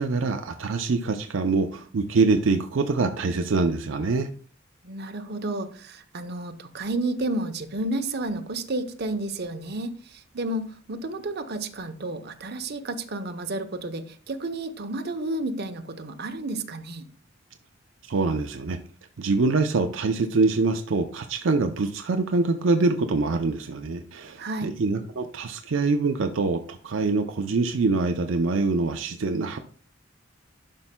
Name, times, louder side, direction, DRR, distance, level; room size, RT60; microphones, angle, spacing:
voice 1, 0.0-4.3 18.0-18.8 19.2-29.6, right 3 dB, 80° right, 7 dB, 0.5 m, -24 dB
voice 2, 4.8-17.1 24.4-24.7, right 2 dB, 55° right, 7 dB, 0.8 m, -31 dB
11.5 x 5.4 x 2.2 m, 0.43 s
head